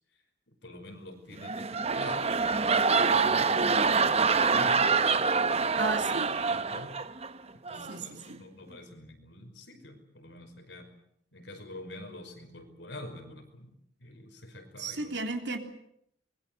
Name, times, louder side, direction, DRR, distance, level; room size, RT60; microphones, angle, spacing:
voice 1, 0.5-4.9 5.1-5.9 6.4-6.9 7.5-10.9 11.3-15.1, left 1 dB, 70° left, 5 dB, 5.4 m, -47 dB
sound 1, 1.3-7.3 7.7-8.0, right 5 dB, 35° right, 0.9 m, -26 dB
voice 2, 5.8-6.4 7.9-8.4 14.8-15.6, right 3 dB, 65° right, 5 dB, 3.4 m, -34 dB
24.5 x 22.0 x 8.0 m, 0.74 s
head